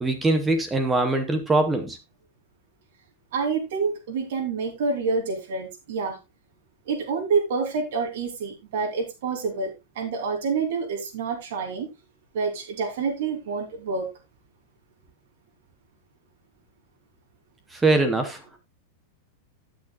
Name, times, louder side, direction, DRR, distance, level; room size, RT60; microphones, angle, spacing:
voice 1, 0.0-2.0 17.7-18.6, right 2 dB, 10° right, 0.8 m, -22 dB
voice 2, 3.3-6.2 6.8-11.9 12.3-14.1, right 4 dB, 60° right, 3.0 m, -27 dB
17.5 x 6.3 x 2.4 m
supercardioid pair, 180°, 0 cm